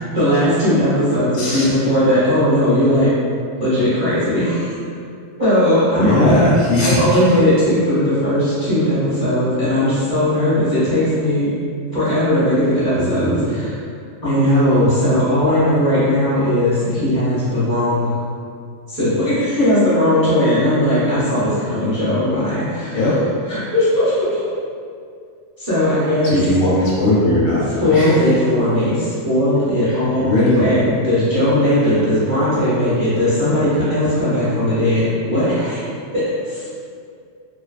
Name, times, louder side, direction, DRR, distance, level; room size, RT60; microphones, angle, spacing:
voice 1, 0.1-3.1 3.6-4.7 5.4-6.5 6.8-11.5 11.9-13.8 14.2-18.2 18.9-23.0 23.5-24.4 25.6-26.3 27.8-35.8 36.1-36.7, left 1 dB, 15° right, -13 dB, 0.7 m, -18 dB
voice 2, 1.3-1.7 5.9-7.2 12.9-13.5 15.4-15.7 22.9-23.2 26.2-28.3 29.8-30.7 31.8-31.9, left 1 dB, 50° left, -7 dB, 0.6 m, -19 dB
2.4 x 2.3 x 2.4 m, 2.3 s
omnidirectional pair, 1.3 m